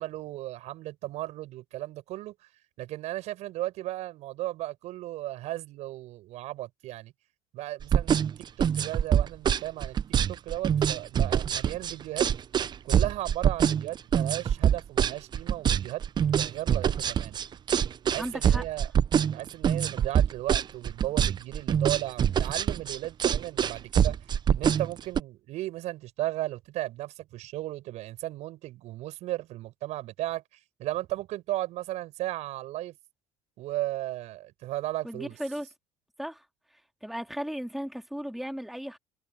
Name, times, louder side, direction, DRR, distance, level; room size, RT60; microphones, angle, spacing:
voice 1, 0.0-2.3 2.8-7.1 7.5-12.3 12.8-16.0 16.3-17.4 18.0-18.9 19.3-30.4 30.8-33.0 33.6-35.4, right 16 dB, 65° right, 7.1 m, -35 dB
sound 1, 7.8-25.2, right 8 dB, 35° right, 0.6 m, -24 dB
voice 2, 18.2-18.6 35.0-35.7 36.2-36.4 37.0-39.0, equal, ahead, 2.3 m, -35 dB
supercardioid pair, 90°, 13 cm